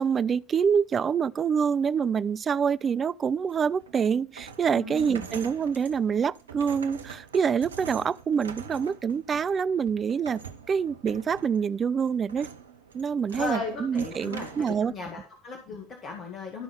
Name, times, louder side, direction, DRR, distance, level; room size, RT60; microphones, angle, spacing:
voice 1, 0.0-10.4 10.7-12.5 12.9-14.9, right 6 dB, 30° right, 0.4 m, -26 dB
sound 1, 3.5-14.8, right 6 dB, 75° right, 0.7 m, -45 dB
voice 2, 4.7-5.3 13.3-16.6, left 4 dB, 40° left, 2.0 m, -36 dB
12.5 x 5.4 x 4.2 m
figure-of-eight pair, 65°, 0 cm